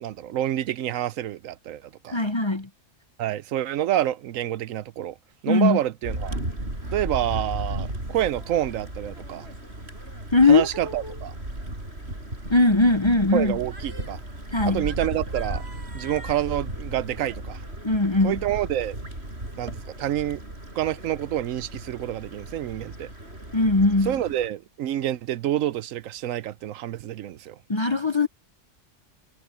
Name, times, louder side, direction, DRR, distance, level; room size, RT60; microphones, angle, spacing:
voice 1, 0.0-2.2 3.2-5.1 5.4-6.4 6.9-9.5 10.5-11.3 13.3-14.2 14.6-15.6 15.9-17.6 18.2-19.0 19.6-20.4 20.7-23.1 24.1-27.6, right 12 dB, 85° right, 1.0 m, -28 dB
voice 2, 2.1-2.7 5.5-5.8 10.3-11.1 12.5-13.6 14.5-14.8 17.8-18.4 23.5-24.1 27.7-28.3, left 3 dB, 30° left, 0.6 m, -20 dB
sound 1, 6.0-24.5, right 1 dB, 55° right, 7.8 m, -35 dB
omnidirectional pair, 1.3 m